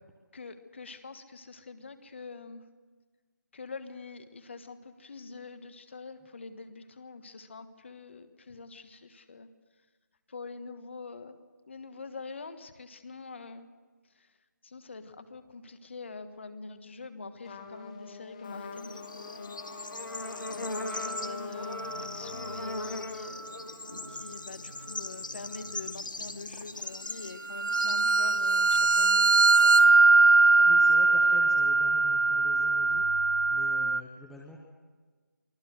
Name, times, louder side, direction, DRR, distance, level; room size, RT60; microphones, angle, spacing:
voice 1, 0.3-2.6 3.5-9.5 10.3-11.4 11.7-13.7 14.6-19.6 20.9-30.8, left 4 dB, 35° left, 10 dB, 1.4 m, -45 dB
Trumpet, 17.4-23.1, left 7 dB, 20° left, 1.2 m, -44 dB
Bird / Insect, 18.4-29.0, left 2 dB, 85° left, 1.7 m, -40 dB
sound 1, 20.9-21.3 21.7-22.0 27.5-34.0, right 3 dB, 80° right, 0.9 m, -22 dB
voice 2, 30.7-33.0 33.5-34.6, left 1 dB, ahead, -3 dB, 0.6 m, -46 dB
24.0 x 16.0 x 7.9 m, 1.4 s
figure-of-eight pair, 170°, 10 cm